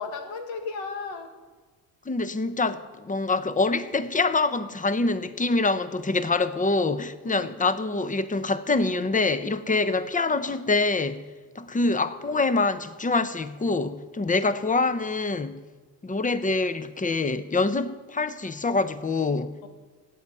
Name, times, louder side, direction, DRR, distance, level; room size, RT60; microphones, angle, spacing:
voice 1, 0.0-1.3 7.2-7.5 14.2-14.4 19.6-19.7, left 4 dB, 80° left, 1.8 m, -35 dB
voice 2, 2.1-11.3 11.5-15.6 16.0-19.5, left 3 dB, 15° left, 0.8 m, -25 dB
17.0 x 7.0 x 5.5 m
supercardioid pair, 65°, 45 cm